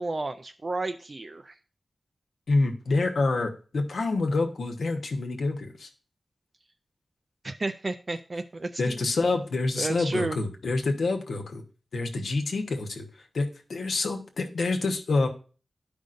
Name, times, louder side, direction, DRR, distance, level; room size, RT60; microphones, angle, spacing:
voice 1, 0.0-1.6 7.4-9.0 9.8-10.4, right 2 dB, 35° right, 8 dB, 0.3 m, -32 dB
voice 2, 2.5-5.9 8.8-11.6 11.9-13.1 13.3-15.3, left 3 dB, 75° left, 3 dB, 1.1 m, -27 dB
12.5 x 5.2 x 2.5 m, 0.38 s
wide cardioid pair, 130°, 0 cm